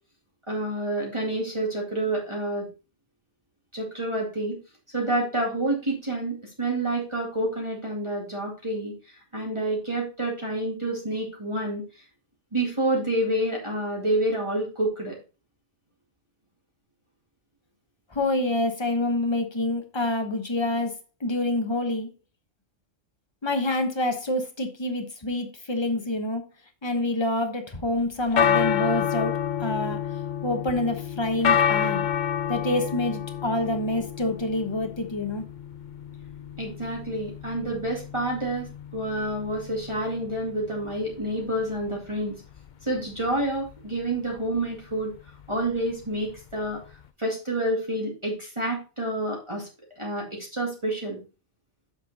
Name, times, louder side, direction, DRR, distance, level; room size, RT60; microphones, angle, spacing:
voice 1, 0.5-2.7 3.7-4.6 4.9-8.9 9.3-11.8 12.5-15.2 36.6-42.4 42.8-45.1 45.5-46.8 47.2-49.7 50.0-51.2, right 1 dB, 25° right, -3 dB, 2.2 m, -28 dB
voice 2, 18.1-22.1 23.4-26.4 26.8-29.3 29.6-30.0 30.4-32.1 32.5-35.4, left 2 dB, 25° left, 6 dB, 1.1 m, -27 dB
sound 1, 28.0-47.1, left 8 dB, 55° left, 0.6 m, -30 dB
7.5 x 5.8 x 4.1 m, 0.31 s
omnidirectional pair, 1.2 m